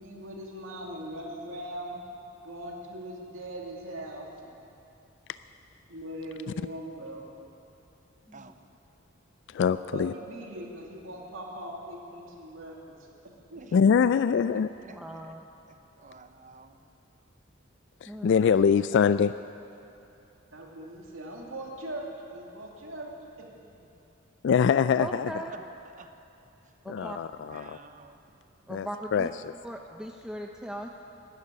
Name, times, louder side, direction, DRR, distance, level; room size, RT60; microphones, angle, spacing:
voice 1, 0.0-2.0 2.4-4.6 5.9-7.3 9.9-13.0 13.5-13.6 20.5-23.5 23.8-23.9, right 1 dB, 80° right, -1 dB, 2.5 m, -40 dB
voice 2, 9.5-10.1 13.7-14.7 18.0-19.3 24.4-25.3 26.9-27.8 28.7-28.9 29.1-29.3, left 6 dB, 60° left, 13 dB, 0.3 m, -23 dB
voice 3, 14.8-15.4 18.1-18.3 25.0-25.7 26.8-27.2 28.7-29.3 29.6-30.9, equal, 5° right, 2 dB, 0.6 m, -39 dB
voice 4, 15.7-16.8 25.5-25.6 26.0-26.1 27.0-27.2 27.5-28.2, right 4 dB, 40° right, 9 dB, 0.8 m, -50 dB
13.0 x 11.5 x 9.7 m, 2.9 s
head